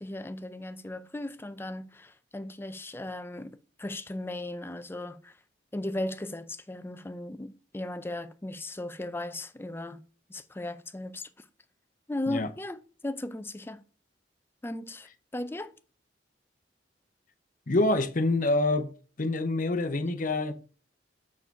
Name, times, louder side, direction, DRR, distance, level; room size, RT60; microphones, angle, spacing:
voice 1, 0.0-5.4 5.7-10.0 10.3-11.4 12.1-13.8 14.6-15.1 15.3-15.7, left 1 dB, 15° left, 0.5 m, -37 dB
voice 2, 17.7-18.9 19.2-20.5, left 2 dB, 50° left, 0.8 m, -26 dB
7.2 x 4.8 x 4.6 m
head